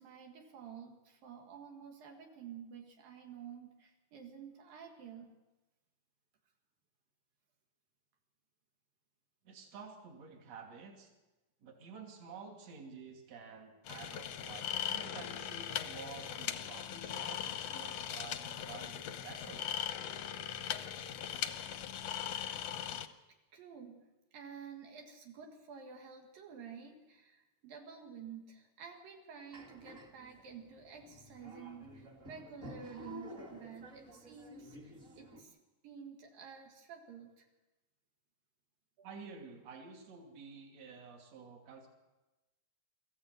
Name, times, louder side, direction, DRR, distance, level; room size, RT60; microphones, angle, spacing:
voice 1, 0.0-5.3 23.5-35.6 35.8-37.5 39.0-39.3, right 6 dB, 75° right, 2 dB, 3.7 m, -51 dB
voice 2, 9.5-11.1 11.6-19.7 22.3-22.4 39.0-41.9, right 5 dB, 50° right, 2 dB, 3.6 m, -51 dB
sound 1, 13.9-23.1, left 10 dB, 70° left, 1.6 m, -39 dB
sound 2, 29.5-35.4, right 1 dB, 25° right, 2.1 m, -51 dB
24.0 x 14.5 x 8.1 m, 1.1 s
omnidirectional pair, 4.1 m